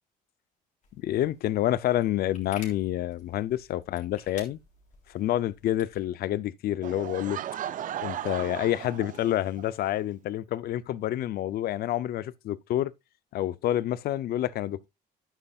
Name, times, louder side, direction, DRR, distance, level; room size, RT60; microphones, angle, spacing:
sound 1, 0.8-6.0, left 4 dB, 45° left, 3.7 m, -52 dB
voice 1, 1.0-4.6 5.1-7.4 8.0-12.9 13.3-14.9, left 13 dB, 65° left, 0.7 m, -28 dB
Laughter / Crowd, 6.8-9.7, right 11 dB, 50° right, 0.6 m, -36 dB
11.5 x 9.2 x 2.4 m
cardioid pair, 110°, 17 cm